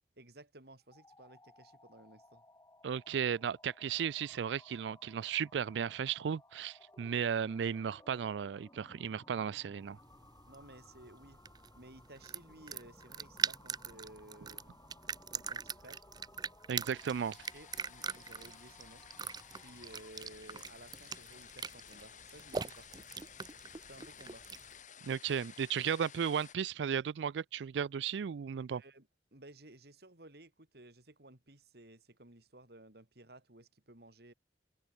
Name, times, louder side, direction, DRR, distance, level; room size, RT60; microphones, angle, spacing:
voice 1, 0.2-2.4 10.5-11.4 11.8-14.7 15.3-16.0 17.5-19.0 19.5-23.1 23.9-24.5 28.7-34.3, right 1 dB, 60° right, 3.9 m, -56 dB
sound 1, 0.8-20.2, left 2 dB, 15° left, 5.2 m, -61 dB
voice 2, 2.8-10.0 16.7-17.4 25.0-28.8, right 7 dB, 85° right, 0.4 m, -35 dB
sound 2, 9.9-24.8, right 6 dB, 25° right, 0.5 m, -43 dB
sound 3, 16.9-26.5, left 8 dB, 45° left, 4.1 m, -55 dB
head